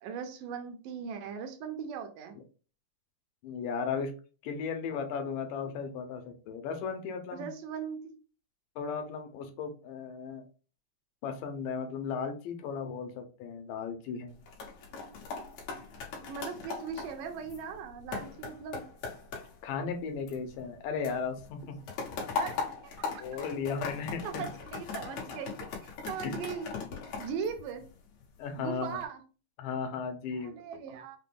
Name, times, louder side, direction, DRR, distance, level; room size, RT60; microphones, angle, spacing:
voice 1, 0.0-2.4 7.3-8.0 16.3-18.9 22.3-22.6 23.1-23.2 24.2-26.7 27.2-27.9 28.6-29.2 30.3-31.2, right 6 dB, 80° right, 6 dB, 2.3 m, -39 dB
voice 2, 3.4-4.1 4.4-7.5 8.8-10.4 11.2-14.4 19.6-21.8 23.2-24.5 26.2-26.3 28.4-29.0 29.6-30.5, left 5 dB, 90° left, 5 dB, 2.3 m, -35 dB
sound 1, 14.3-20.8 21.0-28.2 28.7-29.0, left 5 dB, 65° left, 2.2 m, -39 dB
5.9 x 2.2 x 3.3 m, 0.36 s
omnidirectional pair, 3.8 m